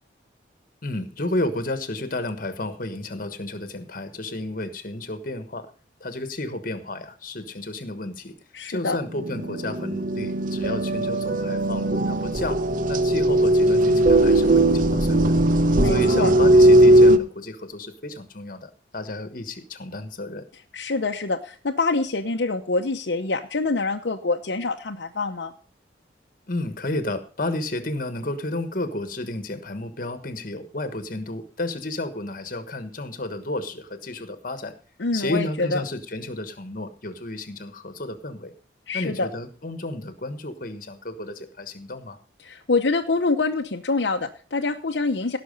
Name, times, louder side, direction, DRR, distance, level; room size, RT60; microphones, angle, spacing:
voice 1, 0.8-5.7 6.0-8.3 8.7-12.6 12.9-15.4 15.8-20.4 26.5-34.8 35.1-38.5 38.9-42.2, left 2 dB, 50° left, 10 dB, 1.3 m, -32 dB
voice 2, 8.5-9.0 15.8-16.3 20.7-25.5 35.0-35.8 38.9-39.3 42.4-45.4, left 3 dB, 70° left, 3 dB, 0.8 m, -25 dB
sound 1, 9.1-17.2, right 1 dB, 45° right, 0.8 m, -18 dB
17.0 x 6.1 x 5.3 m, 0.39 s
head